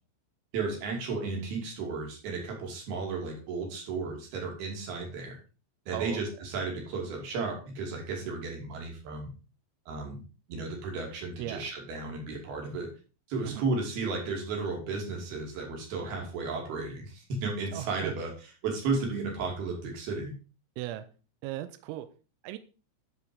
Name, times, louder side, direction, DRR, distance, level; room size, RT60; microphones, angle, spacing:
voice 1, 0.5-5.4 5.9-9.3 9.9-10.2 10.5-12.9 13.3-20.3, right 4 dB, 55° right, 0 dB, 4.3 m, -34 dB
voice 2, 5.9-6.2 11.4-11.7 13.4-13.7 17.7-18.1 20.8-21.1 21.4-22.1 22.4-22.6, right 14 dB, 85° right, 10 dB, 3.4 m, -37 dB
11.5 x 5.0 x 5.3 m, 0.35 s
omnidirectional pair, 5.9 m